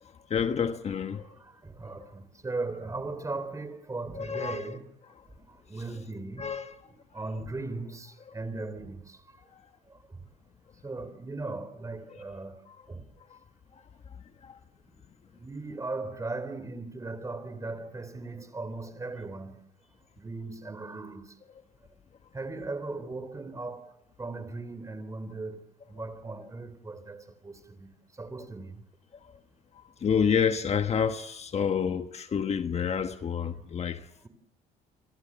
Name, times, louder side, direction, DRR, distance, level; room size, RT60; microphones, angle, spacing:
voice 1, 0.3-1.3 2.0-2.1 4.1-4.8 6.4-6.8 13.3-13.4 14.4-14.6 29.2-29.4 29.7-34.1, left 7 dB, 40° left, 1.3 m, -29 dB
voice 2, 1.2-4.8 5.5-6.6 6.8-9.2 9.9-10.2 10.8-12.6 12.9-13.1 15.3-19.6 20.2-21.3 22.3-25.6 25.9-27.9 28.2-28.8, right 3 dB, 20° right, 4.0 m, -38 dB
30.0 x 26.5 x 7.5 m
cardioid pair, 110°, 17 cm